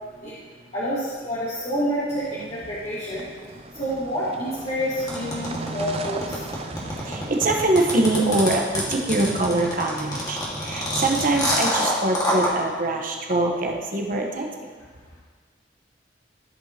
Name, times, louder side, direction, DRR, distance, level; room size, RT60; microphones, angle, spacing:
voice 1, 0.7-3.2 3.7-6.2, equal, 40° left, -11 dB, 2.0 m, -28 dB
sound 1, 2.1-9.1, right 3 dB, 35° right, 0.5 m, -38 dB
sound 2, 5.1-12.5, equal, 20° left, 1.9 m, -26 dB
voice 2, 6.7-14.7, right 2 dB, 50° right, 1 dB, 1.1 m, -24 dB
14.5 x 5.4 x 3.0 m, 1.5 s
head